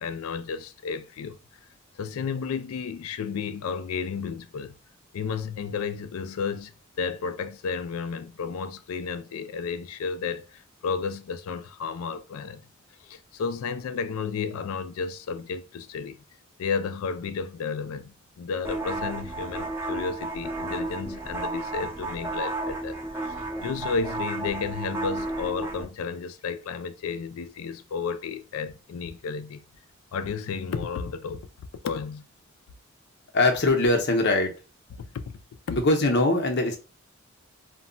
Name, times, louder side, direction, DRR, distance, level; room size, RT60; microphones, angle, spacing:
voice 1, 0.0-1.4 2.0-4.7 5.1-12.6 13.0-16.2 16.6-29.6 30.1-31.5 31.8-32.2 35.0-35.4 35.7-35.8, left 5 dB, 85° left, 0.3 m, -32 dB
sound 1, 18.6-25.9, right 2 dB, 10° right, 0.5 m, -32 dB
voice 2, 33.3-34.5 35.7-36.8, left 2 dB, 55° left, 0.7 m, -22 dB
2.2 x 2.1 x 3.7 m
head